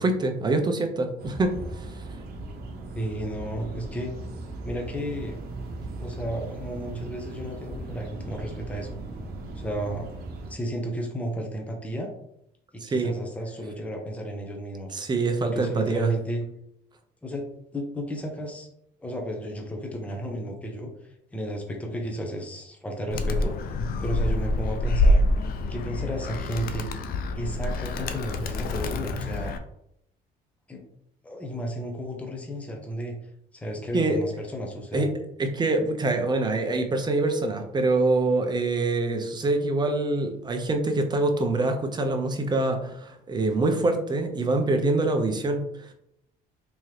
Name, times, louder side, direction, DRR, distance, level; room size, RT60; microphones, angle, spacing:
voice 1, 0.0-1.9 12.8-13.1 14.9-16.1 33.9-34.2 34.9-35.1 35.4-45.9, right 2 dB, 25° right, 4 dB, 0.7 m, -25 dB
sound 1, 1.2-10.5, right 2 dB, 70° right, 0.8 m, -38 dB
voice 2, 2.9-4.1 4.6-5.4 6.0-8.9 9.6-10.1 10.5-12.1 12.7-14.9 15.4-16.4 17.2-17.4 17.7-18.7 19.0-20.9 21.3-25.2 25.7-26.9 27.3-29.5 30.7-30.8 31.2-33.2 33.5-35.1, equal, 10° left, 2 dB, 0.7 m, -33 dB
Animal, 23.1-29.6, left 1 dB, 60° left, 0.5 m, -26 dB
3.6 x 3.0 x 3.2 m, 0.76 s
cardioid pair, 110°, 17 cm